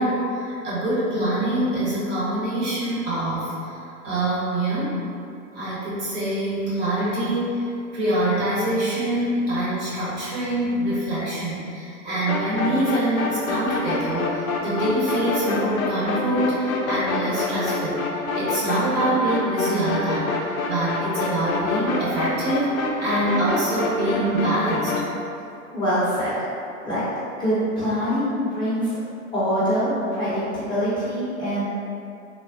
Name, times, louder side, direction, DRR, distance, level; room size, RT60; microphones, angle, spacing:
voice 1, 0.0-3.8 4.0-5.0 5.5-7.7 7.9-24.9, right 1 dB, 25° right, -8 dB, 0.7 m, -25 dB
sound 1, 12.3-25.1, left 3 dB, 70° left, 0.5 m, -27 dB
voice 2, 25.7-26.4 26.8-27.1 27.4-29.0 29.3-31.7, equal, 10° left, -13 dB, 0.6 m, -24 dB
3.3 x 2.1 x 2.5 m, 2.5 s
figure-of-eight pair, 95°, 42 cm